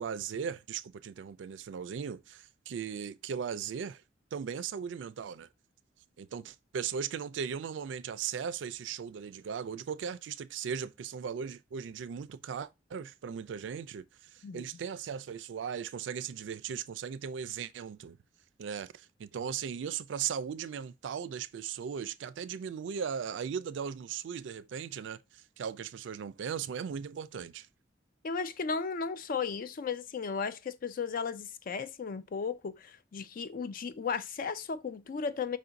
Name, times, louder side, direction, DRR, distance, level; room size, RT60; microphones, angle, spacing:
voice 1, 0.0-4.0 4.3-5.5 6.2-14.0 14.3-18.2 18.6-27.7, right 7 dB, 75° right, 0.3 m, -38 dB
voice 2, 28.2-35.6, left 5 dB, 50° left, 0.4 m, -35 dB
5.1 x 2.5 x 3.9 m
head